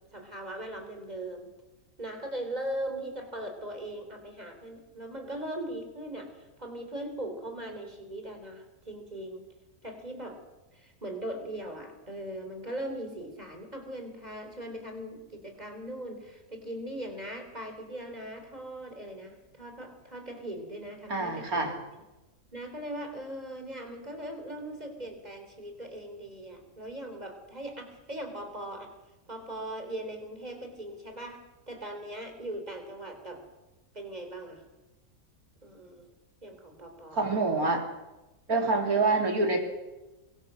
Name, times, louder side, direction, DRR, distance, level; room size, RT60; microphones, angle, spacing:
voice 1, 0.1-1.5 2.0-9.5 9.8-10.4 10.7-21.8 22.5-28.9 29.3-33.4 33.9-34.6 35.6-36.1 36.4-37.2 38.5-38.8, right 1 dB, 30° right, 5 dB, 3.9 m, -39 dB
voice 2, 21.1-21.7 37.1-37.9 38.5-39.6, right 3 dB, 75° right, 2 dB, 3.9 m, -26 dB
23.0 x 23.0 x 6.4 m, 1.1 s
omnidirectional pair, 1.5 m